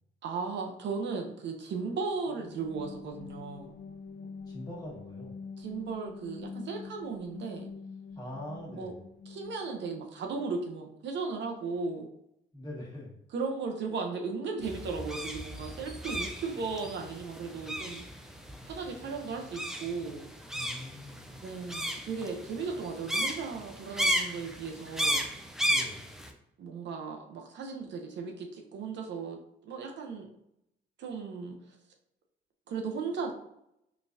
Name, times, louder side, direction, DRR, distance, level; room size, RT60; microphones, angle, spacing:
voice 1, 0.2-3.7 5.6-7.7 8.7-8.9 9.3-12.1 13.3-18.0 18.6-20.3 21.4-25.2 26.6-30.3 31.0-31.6 32.7-33.3, right 4 dB, 65° right, 3 dB, 0.6 m, -36 dB
sound 1, 2.3-10.1, left 5 dB, 55° left, 0.5 m, -45 dB
voice 2, 4.2-5.5 8.1-8.9 12.5-13.2 20.5-21.4 25.7-26.1, left 1 dB, 20° left, -5 dB, 1.4 m, -43 dB
sound 2, 14.6-26.3, equal, ahead, 0.4 m, -34 dB
3.8 x 2.3 x 2.5 m, 0.77 s
cardioid pair, 90°, 20 cm